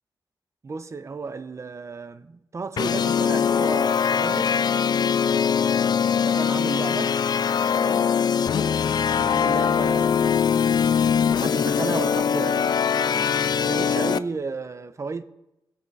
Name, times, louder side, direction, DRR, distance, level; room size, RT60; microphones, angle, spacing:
voice 1, 0.6-4.6 6.2-7.2 7.7-8.1 9.2-10.9 11.3-15.2, right 4 dB, 40° right, 0.6 m, -33 dB
sound 1, 2.8-14.2, left 7 dB, 60° left, 0.4 m, -22 dB
19.5 x 6.6 x 4.0 m
wide cardioid pair, 115°, 8 cm